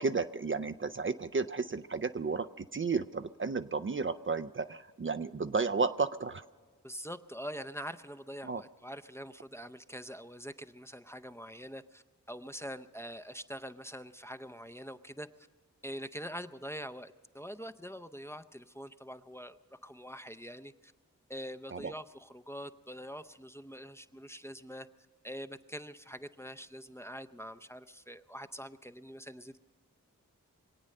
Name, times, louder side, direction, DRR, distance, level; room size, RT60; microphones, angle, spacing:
voice 1, 0.0-6.4 8.4-8.6 21.7-21.9, right 4 dB, 40° right, 10 dB, 0.5 m, -33 dB
voice 2, 6.8-15.3 15.8-20.9 21.3-24.9 25.2-29.6, equal, 10° left, 7 dB, 0.6 m, -44 dB
24.0 x 8.8 x 6.5 m, 1.6 s
cardioid pair, 45°, 33 cm